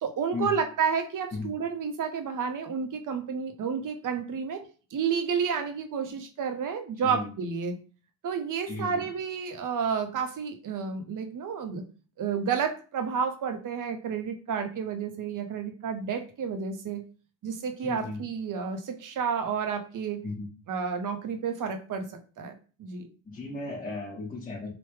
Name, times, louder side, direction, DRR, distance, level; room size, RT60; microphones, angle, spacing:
voice 1, 0.0-4.6 4.9-7.8 8.2-11.8 12.2-17.0 17.4-20.2 20.7-22.1 22.4-22.5 22.8-23.1, right 6 dB, 45° right, 6 dB, 0.6 m, -30 dB
voice 2, 7.0-7.3 8.7-9.0 17.8-18.2 20.2-20.5 23.2-24.7, left 3 dB, 20° left, -6 dB, 0.9 m, -35 dB
3.3 x 2.0 x 3.1 m, 0.37 s
cardioid pair, 105°, 45 cm